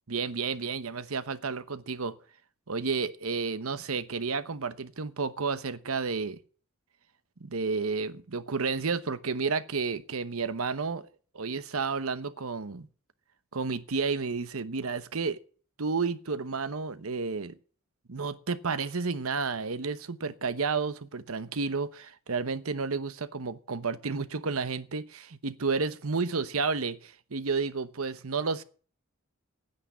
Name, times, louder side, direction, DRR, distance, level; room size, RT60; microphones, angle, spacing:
voice 1, 0.1-2.2 2.7-6.4 7.4-11.1 11.3-12.9 13.5-15.4 15.8-17.5 18.1-28.6, right 4 dB, 85° right, 1.0 m, -31 dB
9.8 x 8.7 x 9.4 m
head